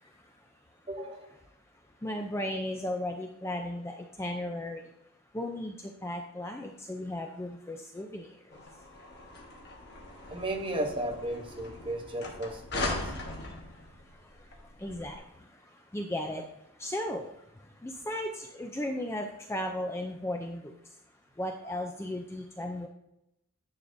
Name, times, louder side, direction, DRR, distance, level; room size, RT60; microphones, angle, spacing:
voice 1, 0.9-1.3 10.3-13.1, right 1 dB, 25° right, 4 dB, 0.8 m, -35 dB
voice 2, 2.0-4.8 5.3-5.7 6.0-8.3 14.8-15.2 15.9-16.4 16.8-17.3 17.8-20.7 21.4-22.9, left 1 dB, 10° left, 3 dB, 0.4 m, -35 dB
sound 1, 8.5-15.1, left 2 dB, 50° left, 1.2 m, -40 dB
9.9 x 6.6 x 2.6 m, 0.81 s
head